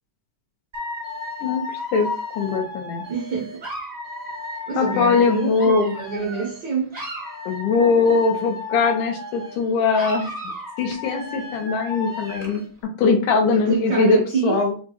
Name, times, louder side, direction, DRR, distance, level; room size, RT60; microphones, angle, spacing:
Dog / Alarm, 0.7-6.6 6.9-9.6 9.9-12.7, left 2 dB, 25° right, 0.9 m, -33 dB
voice 1, 1.4-2.1 2.4-3.1 4.8-6.0 7.5-10.3 10.8-12.6 13.0-14.7, left 4 dB, 80° left, 2.5 m, -21 dB
voice 2, 3.1-3.6 4.7-7.0 13.5-14.6, right 5 dB, 90° right, 0.9 m, -26 dB
6.5 x 2.3 x 2.9 m
omnidirectional pair, 3.7 m